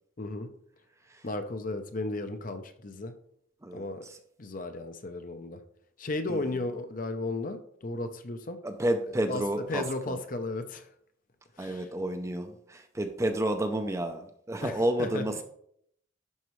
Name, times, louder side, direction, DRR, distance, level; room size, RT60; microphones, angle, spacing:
voice 1, 0.2-0.5 1.2-3.1 3.7-4.1 4.4-5.6 6.0-8.6 9.3-9.4 9.7-10.9 11.6-12.0 14.6-15.2, left 2 dB, 40° left, 8 dB, 0.7 m, -34 dB
voice 2, 8.6-10.2 11.6-15.4, right 1 dB, 15° right, 6 dB, 0.5 m, -30 dB
11.0 x 4.5 x 3.2 m, 0.68 s
head